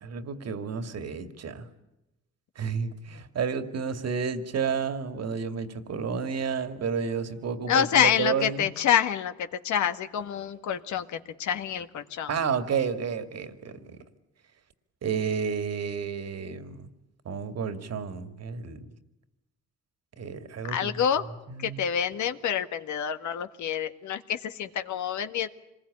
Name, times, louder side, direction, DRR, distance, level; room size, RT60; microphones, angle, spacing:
voice 1, 0.0-1.7 2.6-8.7 12.3-14.0 15.0-16.9 17.2-18.9 20.2-21.0 21.5-21.9, right 6 dB, 55° right, 10 dB, 2.4 m, -31 dB
voice 2, 7.7-12.3 20.7-21.2 21.6-25.5, left 9 dB, 75° left, 9 dB, 1.7 m, -27 dB
26.5 x 21.0 x 10.0 m, 0.94 s
cardioid pair, 90°, 30 cm